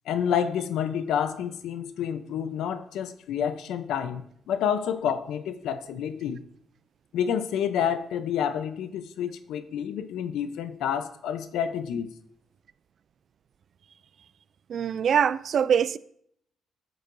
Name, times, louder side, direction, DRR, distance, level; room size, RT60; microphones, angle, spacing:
voice 1, 0.1-6.4 7.1-12.1, left 8 dB, 80° left, 0.6 m, -29 dB
voice 2, 14.7-16.0, right 8 dB, 55° right, 0.3 m, -23 dB
11.0 x 7.9 x 2.6 m
cardioid pair, 90°, 0 cm